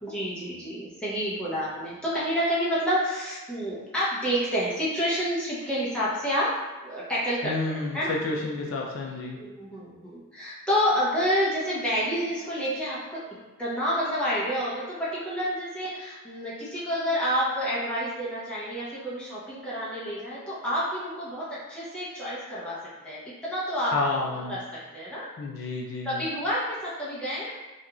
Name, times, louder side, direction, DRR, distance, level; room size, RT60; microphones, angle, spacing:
voice 1, 0.0-6.5 6.8-8.1 9.3-13.2 13.6-22.8 23.0-23.9 24.5-25.2 26.0-27.5, equal, 5° left, -10 dB, 0.7 m, -29 dB
voice 2, 7.4-9.4 23.9-24.6 25.4-26.3, left 3 dB, 60° left, -1 dB, 0.3 m, -30 dB
2.5 x 2.3 x 2.9 m, 1.2 s
head